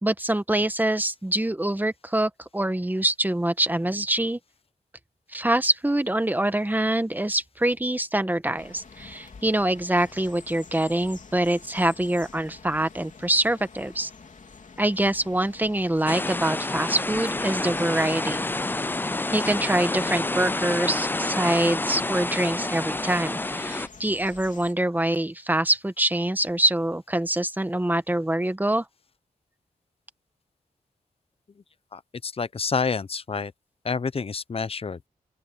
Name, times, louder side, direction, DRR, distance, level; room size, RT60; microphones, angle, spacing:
voice 1, 0.0-4.4 5.3-14.1 14.8-18.5 19.3-28.8, right 1 dB, 10° right, 1.3 m, -25 dB
sound 1, 8.6-24.7, left 5 dB, 55° left, 2.9 m, -48 dB
sound 2, 16.1-23.9, left 2 dB, 15° left, 0.4 m, -28 dB
voice 2, 31.9-33.5 33.8-35.0, left 5 dB, 40° left, 0.8 m, -28 dB
open air
cardioid pair, 75°, 15 cm